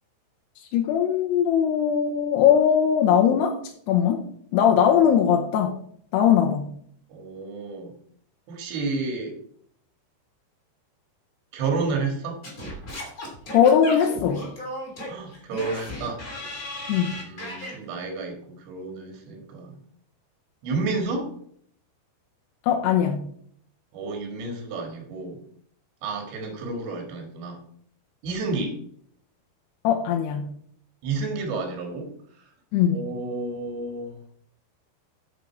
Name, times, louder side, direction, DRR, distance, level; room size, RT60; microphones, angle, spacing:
voice 1, 0.7-3.6 3.9-4.2 4.5-5.8 6.1-6.7 13.5-14.4 16.9-17.2 22.6-23.3 29.8-30.5 32.7-33.0, left 8 dB, 75° left, 1 dB, 2.7 m, -20 dB
voice 2, 7.1-7.9 8.5-9.4 11.5-12.4 15.1-16.2 17.1-19.7 20.6-21.3 23.9-25.4 26.0-27.6 28.2-28.8 31.0-32.1 32.9-34.2, right 3 dB, 80° right, 3 dB, 4.3 m, -30 dB
Singing / Scratching (performance technique), 12.4-17.8, left 1 dB, 25° left, 2.8 m, -35 dB
9.2 x 7.4 x 4.7 m, 0.62 s
omnidirectional pair, 5.0 m